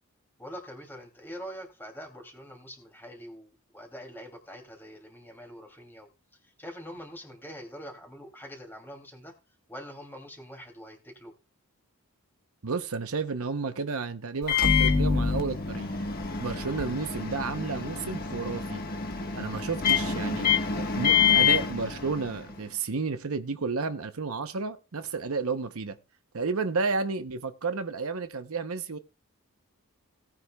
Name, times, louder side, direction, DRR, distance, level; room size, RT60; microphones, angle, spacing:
voice 1, 0.4-6.1 6.4-9.3 9.7-11.3, equal, 10° left, 2.8 m, -44 dB
voice 2, 12.6-15.9 16.4-18.8 19.4-26.0 26.3-29.0, right 4 dB, 75° right, 0.8 m, -32 dB
Microwave oven, 14.4-22.6, left 6 dB, 45° left, 1.4 m, -26 dB
18.0 x 9.7 x 2.3 m
head